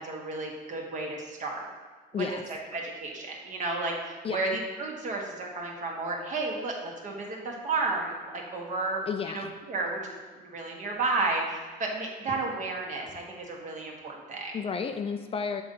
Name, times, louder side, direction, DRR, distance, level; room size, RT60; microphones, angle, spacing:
voice 1, 0.0-1.7 2.1-2.4 2.7-14.6, right 3 dB, 45° right, -1 dB, 1.6 m, -32 dB
voice 2, 9.1-9.5 14.5-15.6, left 6 dB, 35° left, 7 dB, 0.5 m, -32 dB
7.6 x 3.9 x 5.6 m, 1.5 s
cardioid pair, 110°, 17 cm